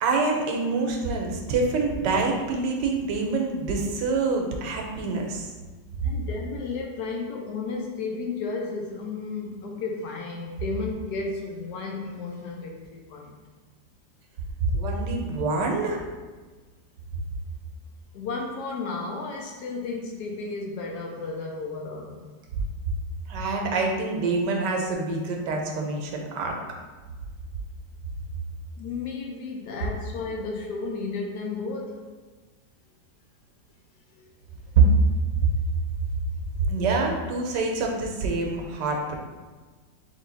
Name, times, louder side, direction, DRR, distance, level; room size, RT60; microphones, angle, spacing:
voice 1, 0.0-5.5 14.6-16.0 23.3-26.6 34.8-34.9 36.7-39.2, right 4 dB, 80° right, 1 dB, 1.3 m, -25 dB
voice 2, 6.0-13.4 18.1-22.3 28.8-32.0 34.1-34.3 36.6-36.8, left 4 dB, 70° left, 0 dB, 1.2 m, -33 dB
3.6 x 3.1 x 3.9 m, 1.3 s
omnidirectional pair, 1.9 m